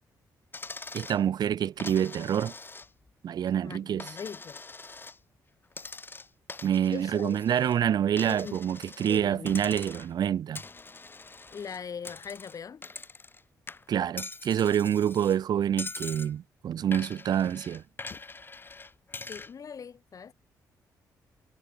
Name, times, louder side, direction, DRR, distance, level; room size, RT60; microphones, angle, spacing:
Coin (dropping), 0.5-1.2 1.8-3.1 3.5-5.2 5.7-7.8 8.2-9.2 9.5-10.2 10.5-13.4 13.7-15.4 15.8-16.3 16.9-19.5, left 3 dB, 30° left, 4.6 m, -43 dB
voice 1, 0.9-2.5 3.2-4.1 6.6-10.6 13.9-17.8, right 9 dB, 70° right, 2.2 m, -27 dB
voice 2, 3.6-4.6 6.9-7.4 8.3-8.6 9.0-9.7 11.5-12.8 18.1-18.2 19.3-20.3, left 6 dB, 50° left, 5.6 m, -40 dB
cardioid pair, 75°, 7 cm